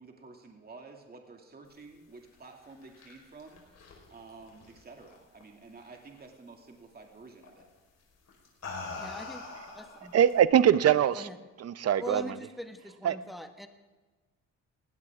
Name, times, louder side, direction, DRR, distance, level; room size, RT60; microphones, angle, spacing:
voice 1, 0.0-7.7, right 3 dB, 30° right, 2 dB, 2.5 m, -51 dB
sound 1, 2.5-5.4 5.8-6.2 7.4-7.7 8.3-10.4, left 3 dB, 60° left, 4.7 m, -43 dB
voice 2, 9.0-9.5 9.7-10.1 11.1-11.4 12.0-13.7, equal, ahead, 6 dB, 1.5 m, -41 dB
voice 3, 10.1-11.2 11.6-12.2 13.0-13.2, right 9 dB, 55° right, 15 dB, 0.7 m, -22 dB
20.5 x 16.5 x 3.7 m, 1.3 s
cardioid pair, 90°, 30 cm